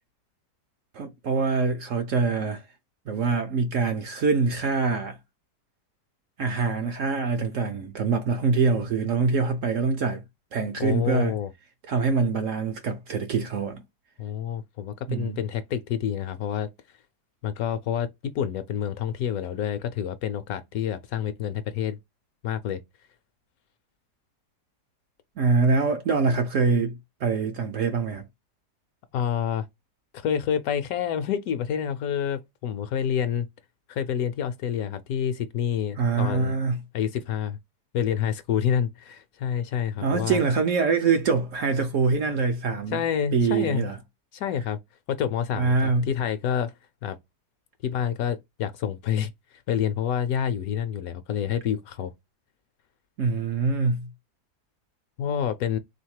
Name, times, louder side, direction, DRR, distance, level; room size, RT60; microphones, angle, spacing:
voice 1, 0.9-2.6 3.1-5.2 6.4-10.2 10.5-11.3 11.9-13.8 15.1-15.4 25.4-28.3 36.0-36.8 40.0-43.0 43.3-44.0 45.6-46.0 53.2-54.1, right 4 dB, 65° right, 0.8 m, -24 dB
voice 2, 10.8-11.5 14.2-16.7 17.4-22.0 22.4-22.8 29.1-29.7 30.1-33.5 33.9-36.6 36.9-37.6 37.9-40.4 42.9-43.9 44.3-44.8 45.1-46.7 47.0-47.2 47.8-49.3 49.7-52.1 55.2-55.8, left 9 dB, 70° left, 1.0 m, -28 dB
3.5 x 2.8 x 4.6 m
omnidirectional pair, 1.7 m